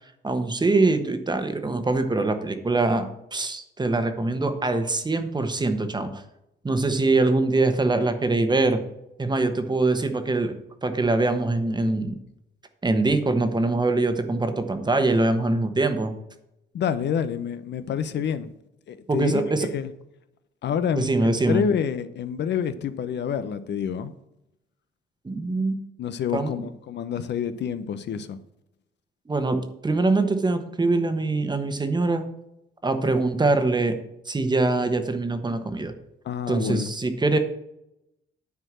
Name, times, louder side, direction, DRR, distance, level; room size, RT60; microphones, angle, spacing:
voice 1, 0.2-6.2 6.6-8.8 9.2-12.1 12.8-16.1 19.1-19.7 20.9-21.6 25.2-25.8 26.3-26.5 29.3-29.6 29.8-32.2 32.8-33.9 34.3-35.9 36.5-37.4, right 2 dB, 20° right, 8 dB, 1.2 m, -23 dB
voice 2, 16.7-18.5 18.9-19.9 20.6-24.1 26.0-28.4 36.2-36.9, left 8 dB, 60° left, 12 dB, 0.7 m, -28 dB
9.6 x 4.5 x 7.5 m, 0.85 s
cardioid pair, 90°, 20 cm